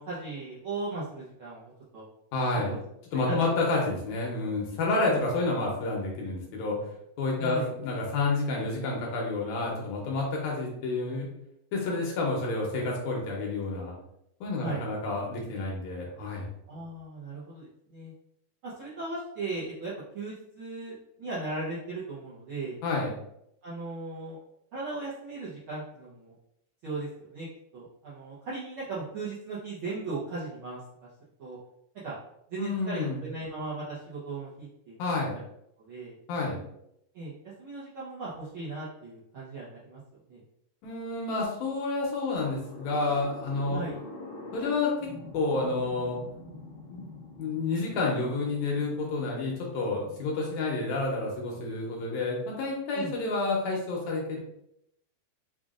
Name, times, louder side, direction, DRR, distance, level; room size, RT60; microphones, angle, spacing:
voice 1, 0.0-2.0 2.7-2.8 3.1-3.4 5.0-5.3 7.4-7.7 14.6-14.8 16.7-18.1 18.6-22.8 23.6-24.4 24.7-26.4 26.8-27.5 27.7-31.1 31.4-31.6 32.0-32.2 32.5-35.0 35.3-35.4 35.8-36.2 37.1-40.0 40.3-40.4 43.7-44.0 52.9-53.1, right 3 dB, 70° right, -9 dB, 1.2 m, -37 dB
voice 2, 2.3-2.8 3.1-6.8 7.2-11.3 11.7-13.9 14.4-16.5 22.8-23.1 32.6-33.2 35.0-35.4 36.3-36.6 40.8-43.8 44.5-44.9 45.3-46.2 46.9-47.0 47.4-54.4, left 3 dB, 75° left, -2 dB, 2.1 m, -29 dB
sound 1, 42.3-52.7, left 1 dB, 40° left, 0.7 m, -46 dB
5.6 x 2.5 x 2.4 m, 0.77 s
omnidirectional pair, 3.5 m